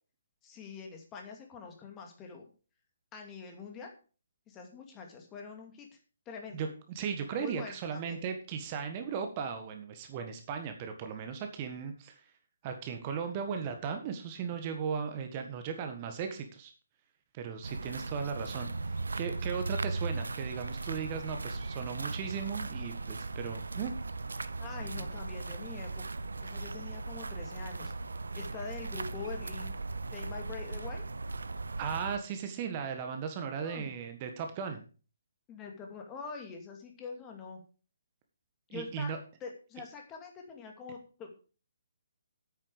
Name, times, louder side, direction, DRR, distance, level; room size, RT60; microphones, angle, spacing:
voice 1, 0.4-2.5 3.1-3.9 4.5-5.9 6.3-6.7 7.4-8.2 24.6-26.0 26.4-27.9 28.3-29.7 30.1-31.0 33.6-33.9 35.5-37.6 38.7-39.1 39.4-41.3, left 5 dB, 15° left, 2 dB, 2.4 m, -44 dB
voice 2, 6.5-12.3 12.6-16.7 17.3-23.9 25.0-25.1 31.8-34.8 38.7-39.2, right 6 dB, 30° right, 6 dB, 1.5 m, -37 dB
sound 1, 17.6-32.2, right 3 dB, 70° right, 0.7 m, -38 dB
9.8 x 9.1 x 5.0 m, 0.37 s
figure-of-eight pair, 135°, 0 cm